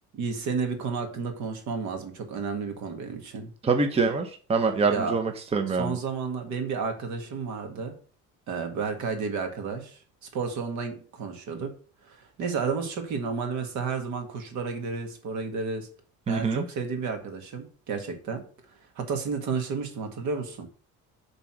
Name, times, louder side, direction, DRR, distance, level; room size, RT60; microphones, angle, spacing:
voice 1, 0.1-3.5 4.9-5.2 5.8-7.9 8.5-11.7 12.0-15.9 16.3-18.4 19.0-20.7, right 5 dB, 70° right, 5 dB, 1.9 m, -31 dB
voice 2, 3.6-6.0 16.3-16.6, right 4 dB, 20° right, 6 dB, 0.8 m, -25 dB
7.5 x 4.0 x 6.0 m, 0.40 s
cardioid pair, 150°, 30 cm